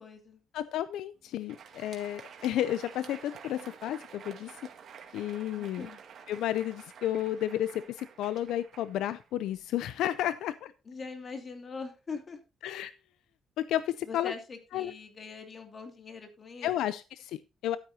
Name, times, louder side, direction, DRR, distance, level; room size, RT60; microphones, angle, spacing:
voice 1, 0.0-0.4 5.6-6.0 10.9-12.4 14.1-16.7, left 4 dB, 40° left, 2.5 m, -42 dB
voice 2, 0.5-4.6 5.1-5.9 6.3-10.7 12.6-12.9 13.6-14.3 14.7-14.9 16.6-17.8, left 12 dB, 85° left, 0.4 m, -32 dB
Crowd, 1.3-9.8, right 7 dB, 60° right, 2.1 m, -50 dB
12.0 x 9.5 x 2.8 m
cardioid pair, 90°, 0 cm